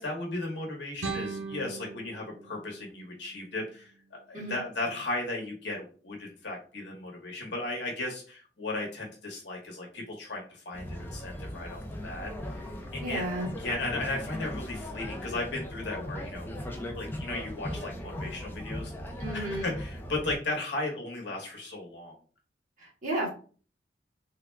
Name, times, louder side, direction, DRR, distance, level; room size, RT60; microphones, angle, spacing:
voice 1, 0.0-12.7 12.9-13.3 13.6-16.5 17.0-18.9 19.3-22.2, left 2 dB, 80° left, -1 dB, 1.1 m, -36 dB
sound 1, 1.0-4.0, right 4 dB, 70° right, 0.6 m, -40 dB
sound 2, 10.7-20.4, left 1 dB, 10° left, 0.5 m, -38 dB
voice 2, 13.0-13.5 19.2-19.7 22.8-23.3, right 1 dB, 45° right, -5 dB, 1.8 m, -33 dB
3.6 x 2.2 x 3.2 m, 0.40 s
head